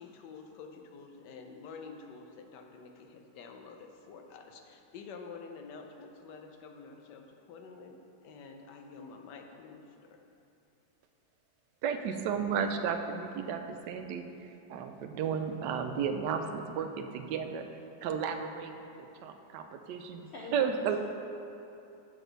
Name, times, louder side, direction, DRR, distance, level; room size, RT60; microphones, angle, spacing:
voice 1, 0.0-10.3, left 4 dB, 85° left, 4 dB, 1.3 m, -49 dB
voice 2, 11.8-17.7 18.0-21.0, right 7 dB, 85° right, 6 dB, 1.2 m, -34 dB
voice 3, 20.3-21.0, left 3 dB, 70° left, -3 dB, 0.6 m, -43 dB
7.8 x 6.2 x 3.9 m, 2.8 s
omnidirectional pair, 1.8 m